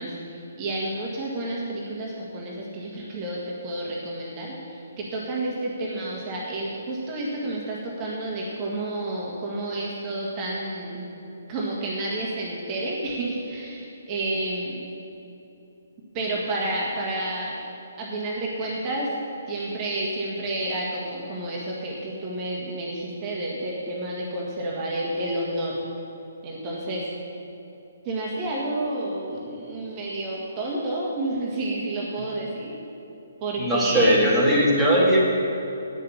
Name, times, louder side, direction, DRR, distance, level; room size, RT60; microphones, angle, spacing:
voice 1, 0.0-11.1 11.5-14.8 16.1-17.6 18.0-19.2 19.5-25.8 26.4-27.1 28.0-32.7 33.4-34.2, right 1 dB, 25° right, -4 dB, 1.8 m, -30 dB
voice 2, 33.6-35.2, equal, ahead, -9 dB, 2.2 m, -19 dB
9.2 x 6.7 x 8.7 m, 2.9 s
figure-of-eight pair, 135°, 0 cm